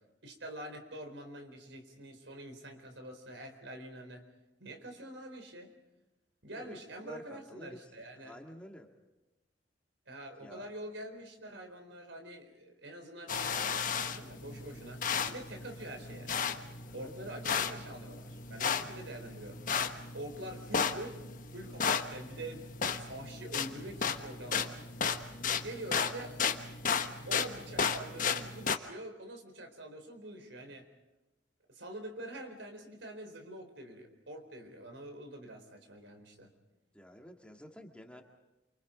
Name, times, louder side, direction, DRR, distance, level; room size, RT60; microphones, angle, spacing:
voice 1, 0.2-4.2 4.6-5.7 6.4-8.4 10.1-16.3 16.9-19.6 20.1-21.2 21.5-22.7 23.0-24.8 25.6-26.4 27.3-30.9 31.7-36.5, right 1 dB, 85° right, 5 dB, 4.2 m, -46 dB
voice 2, 7.0-7.8 8.1-8.9 10.4-10.7 14.5-14.9 16.8-17.1 36.9-38.2, equal, 5° left, 2 dB, 2.1 m, -51 dB
sound 1, 13.3-28.8, left 6 dB, 45° left, 1.3 m, -34 dB
28.5 x 25.0 x 5.2 m, 1.0 s
head